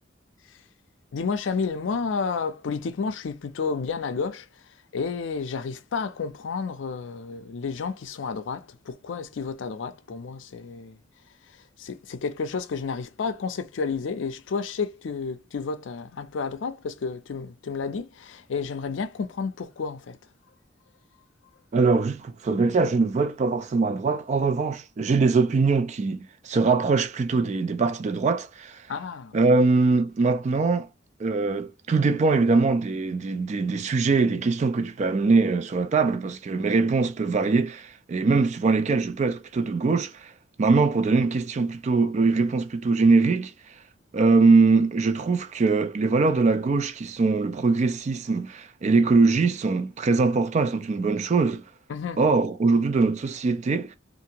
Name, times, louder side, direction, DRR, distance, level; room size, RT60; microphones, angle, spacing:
voice 1, 1.1-4.5 4.9-11.0 11.8-20.2 28.9-29.4 51.9-52.2, left 5 dB, 70° left, 0.4 m, -31 dB
voice 2, 21.7-28.8 29.3-30.9 31.2-40.3 40.6-43.5 44.1-51.6 52.2-54.0, right 4 dB, 35° right, 0.3 m, -22 dB
2.7 x 2.5 x 2.8 m
head